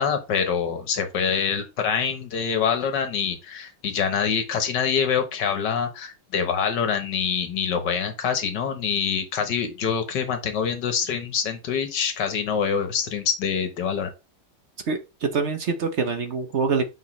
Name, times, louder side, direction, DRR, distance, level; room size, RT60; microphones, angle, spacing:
voice 1, 0.0-14.1, left 7 dB, 65° left, 1.8 m, -25 dB
voice 2, 14.9-16.9, right 4 dB, 50° right, 0.9 m, -25 dB
6.2 x 5.2 x 3.2 m
omnidirectional pair, 2.0 m